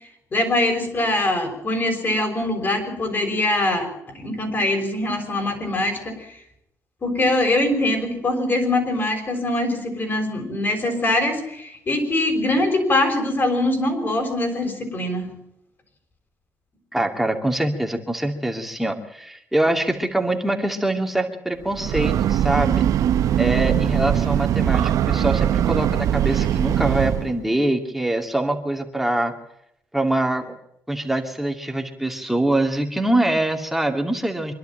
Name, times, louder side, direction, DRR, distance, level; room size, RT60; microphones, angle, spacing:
voice 1, 0.3-3.9 4.1-6.2 7.0-15.3, left 1 dB, 35° left, 4 dB, 6.2 m, -23 dB
voice 2, 16.9-22.8 23.4-29.3 29.9-30.5 30.9-34.5, right 1 dB, 5° right, 3 dB, 2.5 m, -24 dB
Breathing / Train, 21.6-27.4, right 10 dB, 75° right, 0.8 m, -21 dB
25.5 x 11.5 x 9.0 m, 0.78 s
cardioid pair, 105°, 6 cm